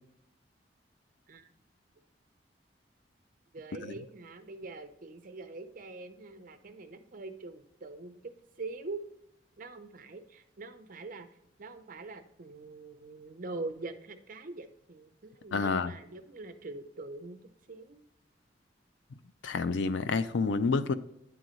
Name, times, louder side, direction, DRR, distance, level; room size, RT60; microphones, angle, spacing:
voice 1, 3.5-9.0 9.6-11.3 11.6-17.4 17.7-18.0, right 3 dB, 50° right, 0.6 m, -43 dB
voice 2, 15.5-15.9 19.4-20.9, left 4 dB, 80° left, 0.4 m, -29 dB
9.4 x 3.9 x 3.0 m
head